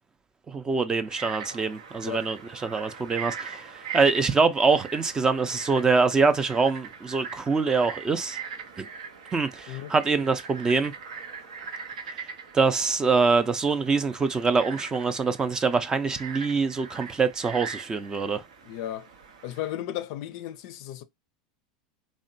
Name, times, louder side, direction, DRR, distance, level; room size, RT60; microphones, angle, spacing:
voice 1, 0.5-8.4 8.8-8.9 9.3-10.9 12.5-18.4, right 4 dB, 20° right, 0.4 m, -24 dB
Frog, 1.0-19.7, right 6 dB, 85° right, 0.6 m, -41 dB
voice 2, 18.6-19.1 19.4-21.0, left 12 dB, 65° left, 0.4 m, -34 dB
2.7 x 2.1 x 2.6 m
hypercardioid pair, 100°, 3 cm